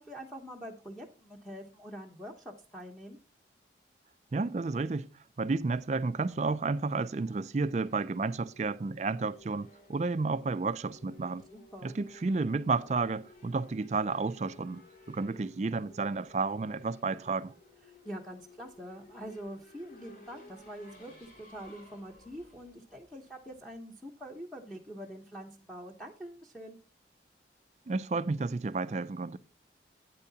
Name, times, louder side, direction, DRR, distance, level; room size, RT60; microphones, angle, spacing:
voice 1, 0.0-3.2 11.5-12.0 18.0-26.8, equal, ahead, 0.9 m, -45 dB
voice 2, 4.3-5.1 5.4-11.5 11.8-17.5 27.9-29.4, right 3 dB, 40° right, 0.4 m, -31 dB
Race car auto racing / Accelerating revving vroom, 5.8-23.7, left 1 dB, 50° left, 2.7 m, -57 dB
12.0 x 9.1 x 2.8 m
head